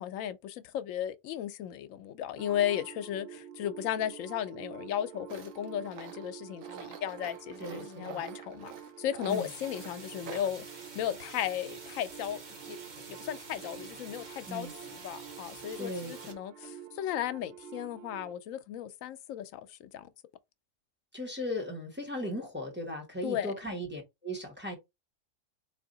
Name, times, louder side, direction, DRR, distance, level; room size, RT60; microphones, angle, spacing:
voice 1, 0.0-8.7 9.0-10.6 10.9-12.4 12.7-12.8 13.1-20.1 23.2-23.5, left 11 dB, 80° left, 1.0 m, -35 dB
sound 1, 2.4-18.4, right 9 dB, 65° right, 0.8 m, -48 dB
Tools, 5.3-10.5, right 7 dB, 85° right, 1.2 m, -48 dB
voice 2, 7.6-8.2 9.3-9.5 14.5-14.7 15.8-16.1 21.1-24.8, left 1 dB, 10° right, 1.3 m, -37 dB
sound 2, 9.3-16.3, right 4 dB, 40° right, 1.0 m, -48 dB
3.9 x 2.7 x 3.8 m
omnidirectional pair, 1.4 m